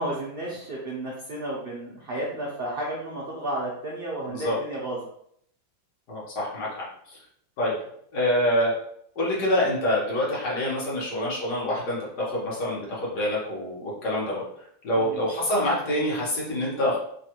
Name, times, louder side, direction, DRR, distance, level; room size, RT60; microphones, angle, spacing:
voice 1, 0.0-5.0 14.9-15.2, right 1 dB, 70° right, -3 dB, 0.5 m, -32 dB
voice 2, 6.1-7.2 7.6-7.7 8.1-8.8 9.2-14.4 14.8-17.0, left 1 dB, 75° left, -5 dB, 1.7 m, -26 dB
3.5 x 2.3 x 2.9 m, 0.68 s
omnidirectional pair, 1.7 m